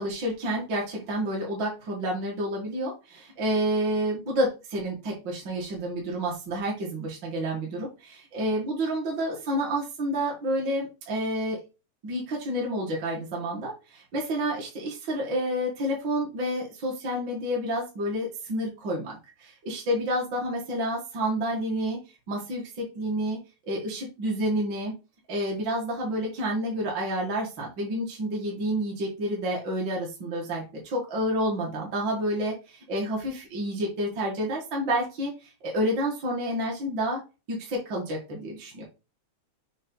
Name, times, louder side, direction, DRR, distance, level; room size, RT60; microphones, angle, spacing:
voice 1, 0.0-11.6 12.0-22.0 22.3-23.4 23.7-24.9 25.3-37.2 37.5-38.8, equal, 45° right, -2 dB, 2.0 m, -29 dB
6.9 x 3.0 x 5.4 m, 0.30 s
omnidirectional pair, 3.3 m